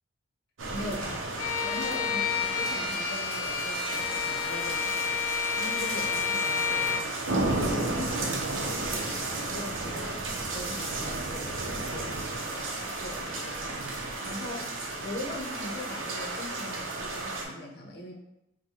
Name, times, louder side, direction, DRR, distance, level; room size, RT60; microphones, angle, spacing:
sound 1, 0.6-17.5, right 2 dB, 75° right, 0.6 m, -33 dB
voice 1, 0.7-5.2 5.6-7.2 7.5-10.2 10.5-14.7 15.0-18.1, left 1 dB, 55° left, 0 dB, 0.7 m, -41 dB
sound 2, 0.9-1.0 1.9-2.0 2.9-3.5 3.9-4.0 4.2-4.5 4.9-5.0 5.2-5.5 5.9-6.0 6.2-6.6 6.9-7.0 7.2-7.5 7.9-8.0 8.2-8.6 8.9-9.5 10.0-11.6 11.9-12.6 12.9-14.2 14.4-15.7, equal, ahead, 1.0 m, -54 dB
Bowed string instrument, 1.4-7.1, left 7 dB, 80° left, 0.3 m, -30 dB
4.6 x 2.2 x 2.9 m, 0.83 s
head